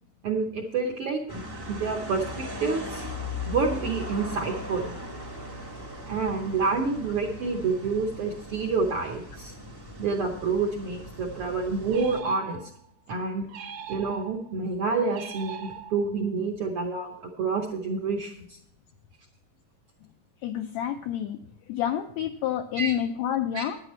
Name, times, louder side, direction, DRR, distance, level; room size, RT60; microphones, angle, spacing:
voice 1, 0.2-3.1 3.5-5.0 6.1-9.5 10.0-12.6 13.1-13.5 13.9-18.6 22.8-22.9 23.5-23.6, right 4 dB, 70° right, 2 dB, 1.3 m, -28 dB
sound 1, 1.3-12.2, left 1 dB, 30° right, 0.4 m, -39 dB
sound 2, 11.9-12.9 13.5-14.5 15.1-16.3, right 8 dB, 85° right, 1.2 m, -42 dB
voice 2, 20.4-21.4 21.7-23.8, left 10 dB, 85° left, 6 dB, 1.5 m, -28 dB
10.0 x 9.8 x 4.3 m, 0.71 s
omnidirectional pair, 3.6 m